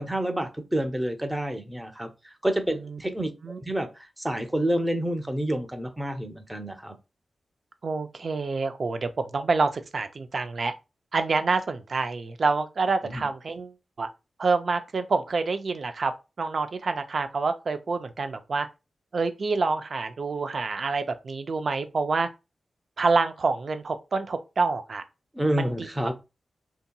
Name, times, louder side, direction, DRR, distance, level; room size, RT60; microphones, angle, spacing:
voice 1, 0.0-3.3 3.6-6.9 13.1-13.3 25.3-26.1, right 1 dB, 15° right, 0.6 m, -28 dB
voice 2, 7.8-10.7 11.1-14.1 14.4-16.1 16.4-18.7 19.1-22.3 23.0-25.0 25.5-25.9, right 4 dB, 65° right, 0.4 m, -27 dB
2.7 x 2.7 x 2.2 m
cardioid pair, 55°, 0 cm